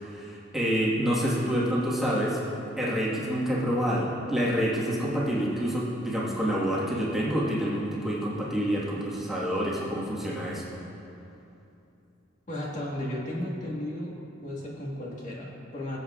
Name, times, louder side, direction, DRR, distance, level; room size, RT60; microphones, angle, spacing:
voice 1, 0.0-2.4 2.8-10.7, equal, ahead, -8 dB, 1.6 m, -27 dB
voice 2, 12.5-14.1 14.4-16.0, left 1 dB, 40° left, -5 dB, 1.7 m, -34 dB
21.0 x 7.6 x 2.4 m, 2.8 s
head